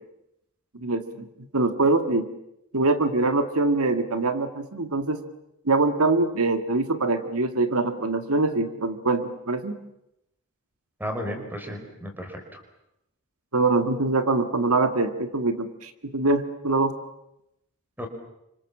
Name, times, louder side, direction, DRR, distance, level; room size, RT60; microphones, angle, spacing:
voice 1, 0.7-1.3 1.5-2.3 2.7-5.2 5.7-9.8 13.5-16.9, right 3 dB, 85° right, 8 dB, 2.0 m, -24 dB
voice 2, 11.0-12.6 18.0-18.1, equal, 10° right, 4 dB, 5.3 m, -33 dB
29.5 x 26.0 x 7.5 m, 0.84 s
head